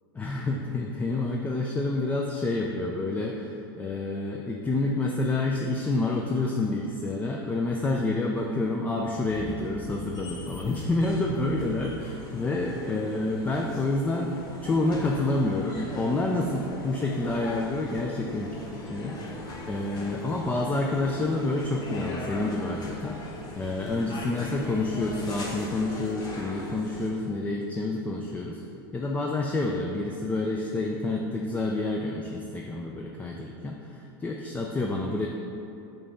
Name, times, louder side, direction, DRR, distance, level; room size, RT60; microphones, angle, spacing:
voice 1, 0.2-14.3 14.6-28.6 28.9-35.3, left 2 dB, 15° left, 0 dB, 0.4 m, -28 dB
sound 1, 9.3-27.1, left 1 dB, 30° left, 1.0 m, -39 dB
5.3 x 3.5 x 5.6 m, 2.7 s
supercardioid pair, 125°, 12 cm